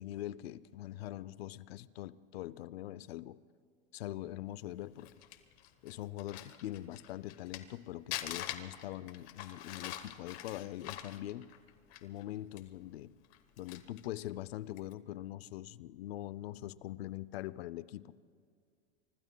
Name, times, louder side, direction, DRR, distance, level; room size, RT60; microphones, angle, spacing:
voice 1, 0.0-3.4 3.9-5.1 5.8-11.5 12.0-13.1 13.6-18.1, left 14 dB, 85° left, 17 dB, 0.6 m, -43 dB
Crumpling crinkling, 4.8-7.8 8.1-12.2 12.6-12.7 13.2-14.1 14.7-14.9, left 13 dB, 45° left, 1.1 m, -44 dB
25.5 x 25.0 x 2.3 m, 2.2 s
supercardioid pair, 155°, 30 cm